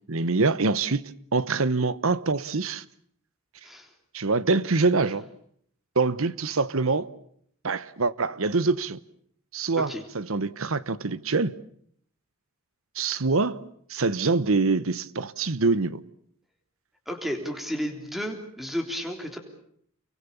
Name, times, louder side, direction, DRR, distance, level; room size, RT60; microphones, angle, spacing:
voice 1, 0.1-2.8 4.1-5.3 6.0-7.1 7.6-9.0 9.5-11.5 13.0-13.6 13.9-16.0, right 3 dB, 75° right, 1.0 m, -25 dB
voice 2, 17.1-19.4, equal, ahead, 3.6 m, -32 dB
29.0 x 23.5 x 7.0 m
head